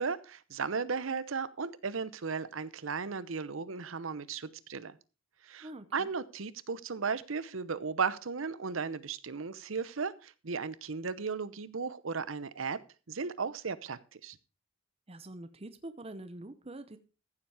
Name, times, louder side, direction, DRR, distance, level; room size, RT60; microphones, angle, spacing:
voice 1, 0.0-5.0 5.4-12.8 13.1-14.4, right 5 dB, 75° right, 16 dB, 0.8 m, -35 dB
voice 2, 5.6-6.1 15.1-17.0, right 1 dB, 30° right, 10 dB, 0.8 m, -45 dB
15.0 x 7.3 x 4.8 m, 0.33 s
head